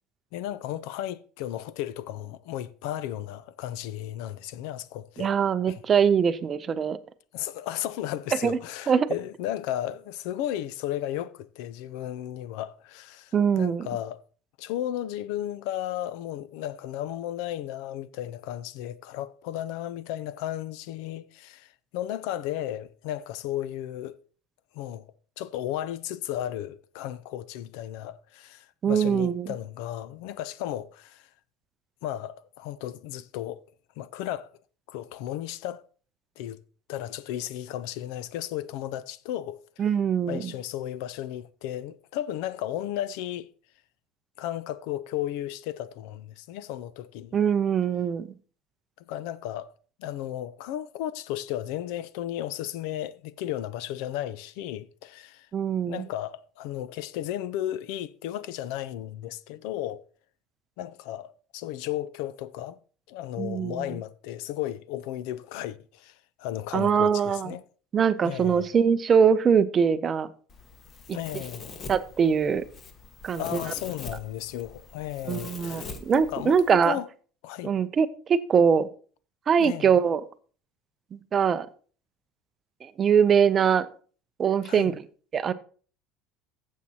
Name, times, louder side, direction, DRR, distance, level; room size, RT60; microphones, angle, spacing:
voice 1, 0.3-5.3 5.7-5.8 7.3-14.2 14.6-24.2 24.7-25.1 25.4-31.3 32.0-33.6 34.0-34.5 34.9-35.8 36.4-36.6 36.9-39.9 40.3-43.5 44.4-47.4 49.1-49.7 50.0-55.5 55.8-60.0 60.8-62.8 63.1-67.6 68.2-68.7 71.1-71.7 73.4-77.1 77.4-77.7 79.6-80.0 84.6-85.0, left 12 dB, 75° left, 0.5 m, -34 dB
voice 2, 5.2-7.0 8.4-8.6 8.9-9.1 13.3-13.8 28.8-29.5 39.8-40.5 47.3-48.3 55.5-56.0 63.4-63.8 66.7-67.5 67.9-70.3 71.1-71.2 71.9-72.6 73.2-73.6 75.3-77.0 77.6-78.9 79.5-80.2 81.3-81.7 82.8-83.9 84.4-84.9 85.3-85.5, right 7 dB, 25° right, 0.5 m, -22 dB
Domestic sounds home sounds, 70.5-76.7, left 4 dB, 30° left, 1.2 m, -43 dB
14.5 x 7.3 x 2.8 m
cardioid pair, 150°, 0 cm